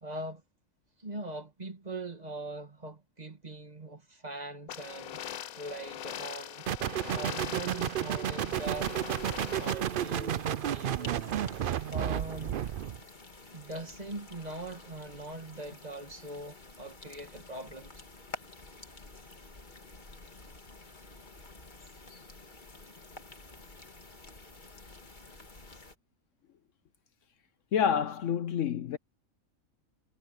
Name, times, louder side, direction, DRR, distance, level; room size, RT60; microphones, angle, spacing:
voice 1, 0.0-0.4 1.0-5.2 5.6-6.6 7.1-9.1 9.6-12.6 13.5-18.0, right 2 dB, 30° right, 2.0 m, -41 dB
sound 1, 4.7-9.7, left 11 dB, 85° left, 1.3 m, -42 dB
sound 2, 6.7-13.0, right 10 dB, 60° right, 0.5 m, -32 dB
sound 3, 8.5-25.9, left 3 dB, 35° left, 2.1 m, -50 dB
voice 2, 27.7-29.0, left 8 dB, 65° left, 1.0 m, -28 dB
omnidirectional pair, 1.5 m